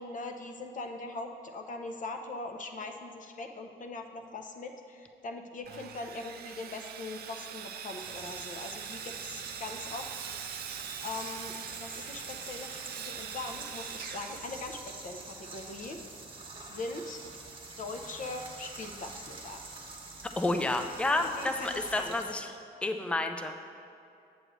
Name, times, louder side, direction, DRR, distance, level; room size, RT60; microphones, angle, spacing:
voice 1, 0.0-10.1 11.0-16.0 16.6-17.2 17.8-19.6 21.4-22.2, left 3 dB, 50° left, 4 dB, 0.7 m, -41 dB
Sawing, 5.6-15.1, right 8 dB, 65° right, 0.4 m, -43 dB
sound 1, 8.0-22.3, right 3 dB, 30° right, 1.1 m, -46 dB
voice 2, 20.4-22.5 22.8-23.6, left 2 dB, 5° left, 6 dB, 0.4 m, -30 dB
7.9 x 7.8 x 3.1 m, 2.5 s
cardioid pair, 95°, 17 cm